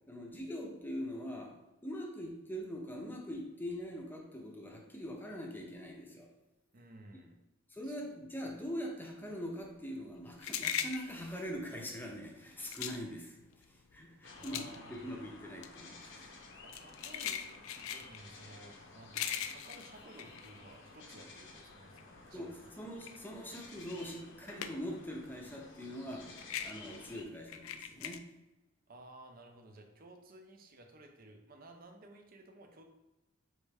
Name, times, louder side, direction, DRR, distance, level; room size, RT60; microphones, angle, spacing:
voice 1, 0.1-1.5 1.8-6.3 7.7-16.4 22.3-26.3 26.6-28.2, equal, 10° left, 0 dB, 0.7 m, -43 dB
voice 2, 6.7-7.4 7.8-8.0 14.4-15.1 16.6-17.4 17.7-22.7 28.9-32.8, right 2 dB, 45° right, 4 dB, 0.6 m, -55 dB
sound 1, 9.7-21.3 21.6-25.1 25.3-28.2, left 9 dB, 80° left, 0.3 m, -41 dB
sound 2, 14.2-27.2, left 3 dB, 60° left, 0.7 m, -54 dB
4.6 x 3.1 x 3.4 m, 1.0 s
head